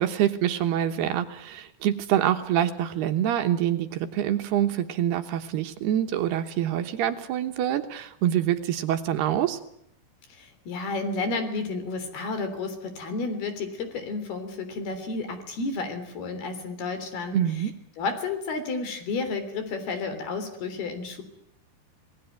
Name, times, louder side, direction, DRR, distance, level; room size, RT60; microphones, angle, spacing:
voice 1, 0.0-9.6 17.3-17.7, right 11 dB, 70° right, 7 dB, 3.0 m, -26 dB
voice 2, 10.3-17.4 18.0-21.2, left 3 dB, 60° left, 9 dB, 5.2 m, -31 dB
27.5 x 19.5 x 9.3 m, 0.74 s
omnidirectional pair, 5.1 m